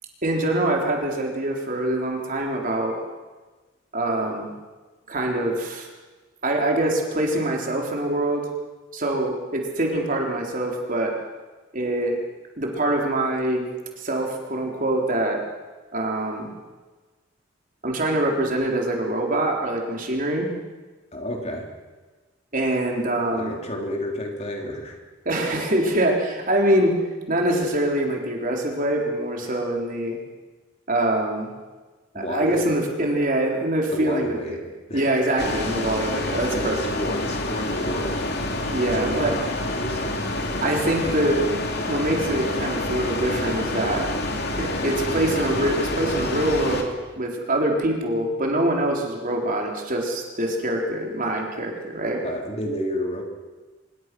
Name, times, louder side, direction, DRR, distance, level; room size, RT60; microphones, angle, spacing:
voice 1, 0.2-3.0 3.9-4.5 5.1-5.9 6.4-8.5 8.9-11.1 11.7-12.2 12.6-13.7 14.0-15.4 15.9-16.5 17.8-20.5 22.5-23.6 25.3-26.9 27.3-30.2 30.9-31.5 32.1-34.6 34.9-36.8 38.7-39.3 40.6-41.5 41.9-44.1 44.6-46.9 47.2-52.2, right 1 dB, 45° right, 0 dB, 3.9 m, -24 dB
voice 2, 21.1-21.7 23.3-25.0 32.1-32.6 33.9-34.6 34.9-35.0 36.5-38.3 38.9-40.2 52.2-53.2, equal, 35° left, 2 dB, 3.4 m, -31 dB
sound 1, 35.4-46.8, left 2 dB, 55° left, 2.9 m, -28 dB
25.5 x 23.0 x 6.2 m, 1.3 s
head